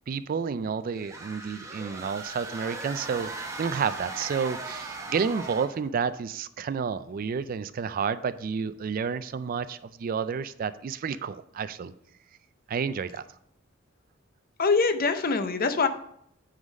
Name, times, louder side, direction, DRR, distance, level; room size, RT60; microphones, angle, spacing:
voice 1, 0.1-11.9 12.7-13.2, right 6 dB, 45° right, 14 dB, 0.3 m, -30 dB
sound 1, 0.9-5.9, right 3 dB, 15° right, 0.9 m, -38 dB
voice 2, 14.6-15.9, left 4 dB, 45° left, 9 dB, 0.6 m, -23 dB
9.4 x 3.9 x 5.2 m, 0.71 s
head